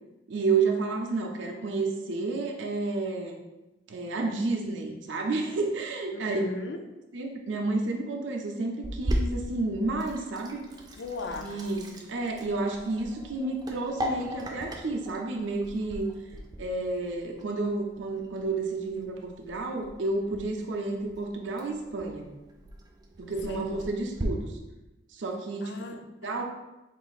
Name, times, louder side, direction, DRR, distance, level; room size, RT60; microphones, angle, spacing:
voice 1, 0.3-3.4 3.9-6.4 7.1-10.6 11.3-16.1 16.6-22.3 23.2-24.6 25.1-25.7 26.2-26.4, right 3 dB, 70° right, 1 dB, 0.5 m, -30 dB
voice 2, 6.1-6.8 11.0-11.5 23.4-23.7 25.6-26.4, left 2 dB, 60° left, 5 dB, 0.4 m, -38 dB
Sink (filling or washing), 8.8-24.2, equal, 20° right, 0.4 m, -39 dB
3.9 x 2.5 x 3.9 m, 1.0 s
head